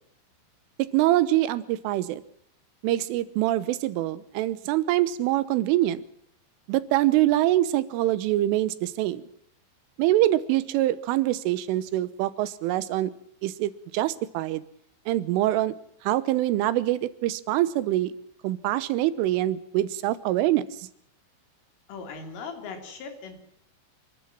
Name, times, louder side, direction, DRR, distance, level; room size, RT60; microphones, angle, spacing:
voice 1, 0.8-2.2 2.8-6.0 6.7-9.2 10.0-13.1 13.4-14.6 15.1-15.7 16.0-18.1 18.4-20.9, right 14 dB, 85° right, 16 dB, 3.6 m, -24 dB
voice 2, 21.9-23.4, left 5 dB, 85° left, 5 dB, 6.2 m, -39 dB
29.0 x 12.5 x 7.5 m, 0.70 s
omnidirectional pair, 5.6 m